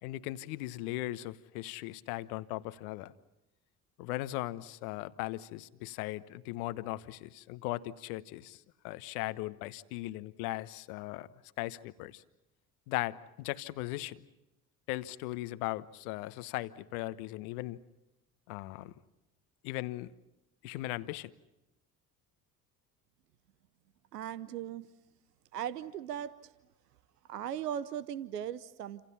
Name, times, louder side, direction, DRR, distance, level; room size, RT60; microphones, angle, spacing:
voice 1, 0.0-3.1 4.0-11.3 11.6-12.2 12.9-14.2 14.9-17.8 18.5-18.9 19.6-20.1 20.6-21.3, left 17 dB, 70° left, 14 dB, 1.2 m, -38 dB
voice 2, 24.1-24.9 25.5-26.5 27.3-29.1, right 10 dB, 85° right, 16 dB, 0.8 m, -38 dB
29.5 x 27.0 x 5.7 m, 0.94 s
figure-of-eight pair, 55°, 46 cm